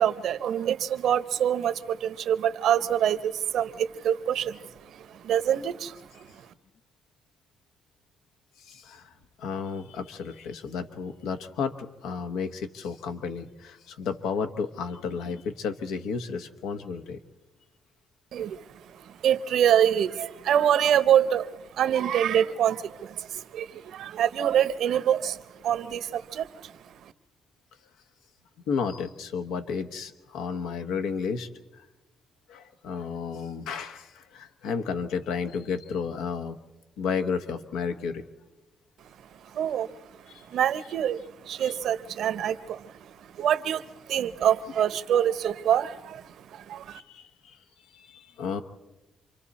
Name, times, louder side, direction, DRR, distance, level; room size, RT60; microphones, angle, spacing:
voice 1, 0.0-6.5 18.3-18.6 18.9-26.7 27.0-27.1 39.4-39.9 40.1-40.2 40.5-47.0, right 9 dB, 75° right, 13 dB, 0.8 m, -26 dB
voice 2, 8.6-17.2 28.7-31.8 32.5-36.6 37.0-38.3 40.3-40.4 41.6-41.9 46.9-47.6 47.9-48.6, left 5 dB, 90° left, 8 dB, 1.1 m, -32 dB
28.0 x 24.5 x 4.2 m, 1.1 s
cardioid pair, 90°, 0 cm